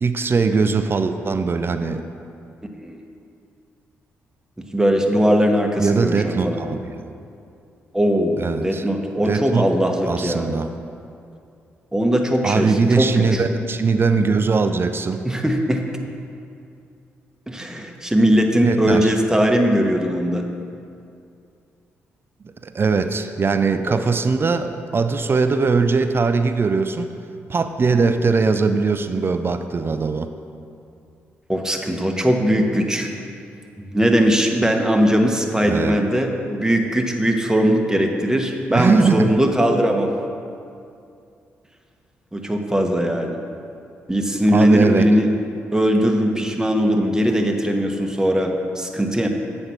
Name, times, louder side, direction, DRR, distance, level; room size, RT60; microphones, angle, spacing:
voice 1, 0.0-2.0 5.8-7.1 8.4-8.8 9.3-9.7 10.1-10.7 12.4-15.3 18.6-19.1 22.6-27.1 27.5-30.3 35.6-36.1 38.7-39.4 44.5-45.1, right 4 dB, 40° right, 9 dB, 0.5 m, -20 dB
voice 2, 4.7-6.6 7.9-10.5 11.9-13.4 15.2-15.9 17.5-20.4 23.9-24.0 31.5-33.1 33.8-40.1 42.3-43.4 44.1-45.3 45.7-49.3, equal, 10° right, 3 dB, 1.1 m, -20 dB
7.9 x 5.3 x 6.0 m, 2.5 s
hypercardioid pair, 45°, 6 cm